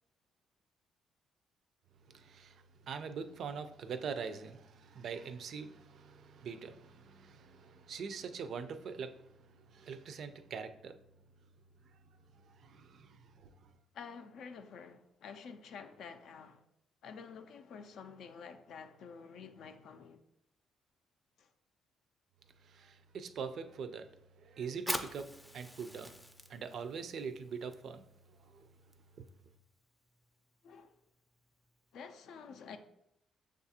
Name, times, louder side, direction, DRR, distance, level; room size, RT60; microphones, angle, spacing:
voice 1, 2.1-11.0 12.4-13.7 22.6-24.1 24.4-26.2 26.5-28.1 28.4-28.7 29.2-29.3, right 6 dB, 65° right, 0.3 m, -43 dB
voice 2, 13.9-16.6 17.0-20.2 21.4-21.5 30.6-30.9 31.9-32.8, left 6 dB, 75° left, 0.4 m, -49 dB
Fire, 24.7-31.9, equal, 5° left, 0.4 m, -46 dB
6.3 x 2.4 x 2.7 m
cardioid pair, 90°, 0 cm